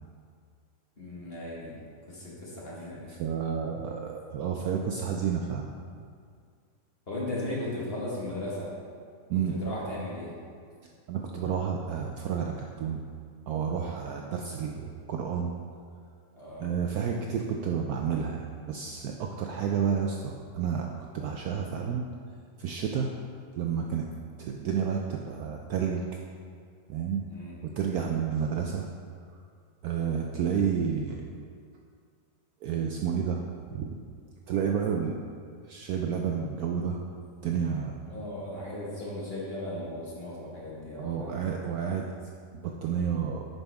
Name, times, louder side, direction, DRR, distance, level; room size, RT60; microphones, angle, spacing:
voice 1, 1.0-1.7 2.1-3.1 7.1-8.7 9.5-10.4 16.3-16.7 27.3-27.6 38.1-41.4, left 1 dB, 35° left, -6 dB, 1.7 m, -36 dB
voice 2, 3.2-5.7 9.3-9.6 11.1-13.0 13.5-15.5 16.6-22.0 22.6-23.1 23.5-24.1 24.4-26.0 26.9-27.2 27.6-28.9 29.8-31.2 32.6-33.4 33.7-34.0 34.5-35.2 35.6-37.0 37.4-38.0 41.0-42.1 42.6-43.5, right 7 dB, 70° right, 1 dB, 0.9 m, -30 dB
9.4 x 5.5 x 3.5 m, 2.1 s
omnidirectional pair, 1.9 m